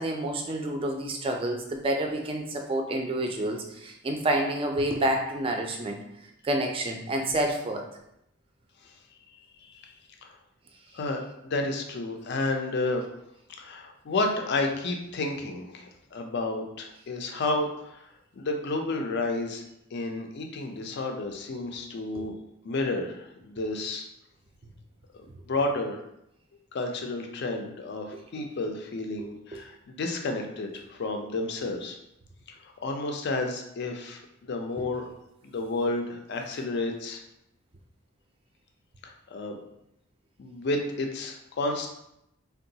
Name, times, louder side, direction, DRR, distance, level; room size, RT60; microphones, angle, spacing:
voice 1, 0.0-6.0 6.4-7.8 22.2-22.3 28.4-28.5 29.2-29.3 29.5-29.6 34.8-34.9, right 1 dB, 25° right, 2 dB, 0.4 m, -29 dB
voice 2, 9.6-9.9 10.2-10.3 10.9-13.0 13.6-19.6 19.9-22.4 22.6-24.1 25.5-26.0 26.7-32.0 32.5-35.1 35.4-37.2 39.0-39.6 40.4-41.9, left 2 dB, 55° left, 3 dB, 0.4 m, -31 dB
3.7 x 2.2 x 2.7 m, 0.81 s
head